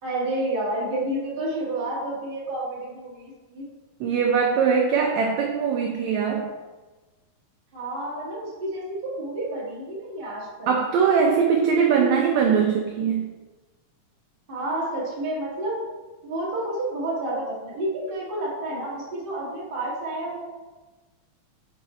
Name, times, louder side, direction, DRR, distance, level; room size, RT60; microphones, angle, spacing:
voice 1, 0.0-3.7 7.7-10.7 14.5-15.8 16.2-20.4, right 1 dB, 40° right, -6 dB, 0.7 m, -30 dB
voice 2, 4.0-6.5 10.7-13.3, right 6 dB, 85° right, 1 dB, 1.6 m, -21 dB
6.0 x 4.7 x 4.2 m, 1.2 s
omnidirectional pair, 3.9 m